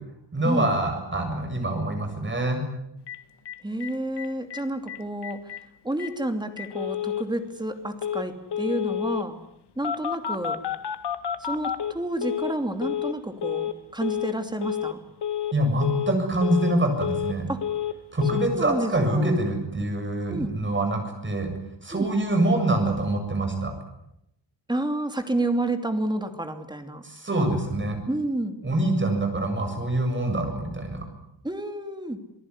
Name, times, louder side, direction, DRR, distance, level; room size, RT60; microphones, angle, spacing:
voice 1, 0.3-2.6 15.5-17.5 18.1-21.5 21.8-23.7 27.0-28.0 28.6-31.0, right 1 dB, 25° right, 5 dB, 7.6 m, -25 dB
Telephone, 3.1-3.2 3.5-3.6 3.8-3.9 4.2-4.6 4.9-5.0 5.2-5.6 6.0-6.1 6.6-7.2 8.0-8.2 8.5-9.2 9.8-12.5 12.8-13.1 13.4-13.7 14.0-14.3 14.6-14.9 15.2-15.5 15.8-16.1 16.4-17.3 17.6-18.0 18.2-18.5, left 9 dB, 60° left, 1.8 m, -29 dB
voice 2, 3.6-5.4 5.8-9.4 9.8-10.6 11.4-15.0 17.5-17.6 18.3-19.4 20.3-20.5 21.9-22.1 24.7-27.0 28.1-28.6 31.4-32.2, right 1 dB, 10° right, 7 dB, 2.8 m, -30 dB
28.0 x 18.5 x 9.9 m, 0.82 s
wide cardioid pair, 140°, 45 cm